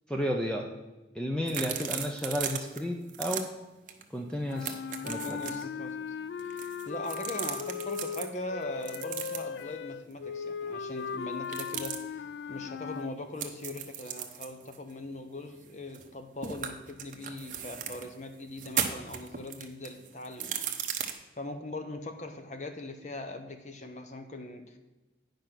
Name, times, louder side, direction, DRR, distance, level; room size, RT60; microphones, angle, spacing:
voice 1, 0.1-0.7 1.1-3.5 4.1-4.8 5.1-5.4, equal, 5° left, 1 dB, 0.6 m, -32 dB
sound 1, 1.5-2.8 3.1-3.4 3.9-4.0 4.3-5.6 6.4-8.3 8.8-9.6 11.4-12.0 13.4-16.1 16.4-18.1 18.5-21.1, right 9 dB, 45° right, 0.8 m, -36 dB
sound 2, 4.4-13.1, left 6 dB, 70° left, 0.3 m, -38 dB
voice 2, 5.0-6.0 6.4-21.0 21.4-24.8, left 2 dB, 40° left, 7 dB, 0.8 m, -41 dB
9.8 x 5.2 x 6.0 m, 1.1 s
head